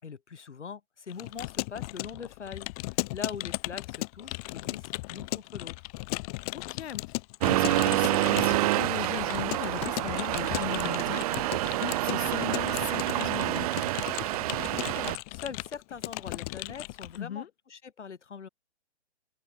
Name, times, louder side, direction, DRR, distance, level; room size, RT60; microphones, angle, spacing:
voice 1, 0.0-5.9 14.7-18.5, left 6 dB, 80° left, 3.3 m, -42 dB
Keyboard (musical) / Computer keyboard, 1.1-17.2, left 25 dB, 30° left, 1.2 m, -36 dB
voice 2, 6.5-11.4 11.8-13.7 17.2-17.5, left 9 dB, 60° left, 3.0 m, -38 dB
Accelerating revving vroom, 7.4-15.2, right 17 dB, 35° right, 0.6 m, -28 dB
open air
hypercardioid pair, 130°, 35 cm